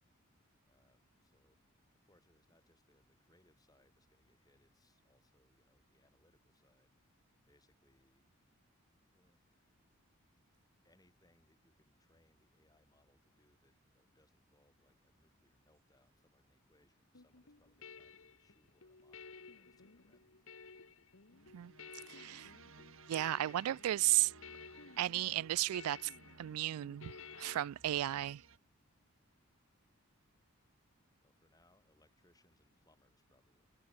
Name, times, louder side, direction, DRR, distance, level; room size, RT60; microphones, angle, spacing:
voice 1, 0.2-1.6 1.9-8.3 9.1-9.8 10.8-20.8 29.7-30.2 31.2-33.7, left 1 dB, 15° left, 7.8 m, -73 dB
sound 1, 17.1-27.7, left 5 dB, 65° left, 1.4 m, -55 dB
sound 2, 21.3-28.6, right 4 dB, 65° right, 1.5 m, -60 dB
voice 2, 22.1-22.5 23.1-24.3 25.0-26.1 26.4-28.4, right 14 dB, 85° right, 0.3 m, -34 dB
head